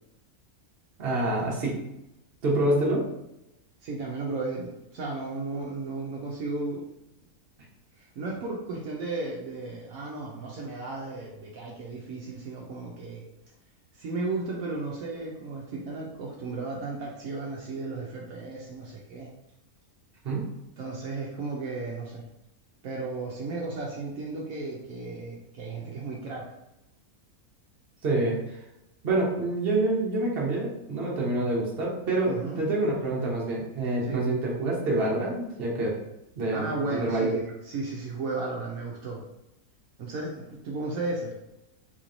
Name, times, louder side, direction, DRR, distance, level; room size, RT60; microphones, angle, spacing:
voice 1, 1.0-1.8 2.4-3.0 20.2-20.5 28.0-28.4 29.0-35.9 36.4-37.4, right 2 dB, 45° right, -3 dB, 1.0 m, -27 dB
voice 2, 3.8-6.8 8.0-13.2 13.9-19.3 20.8-22.2 22.8-26.4 32.3-32.6 34.0-34.3 36.5-39.2 40.0-41.3, right 3 dB, 70° right, -3 dB, 1.0 m, -34 dB
4.0 x 3.0 x 2.5 m, 0.89 s
omnidirectional pair, 1.6 m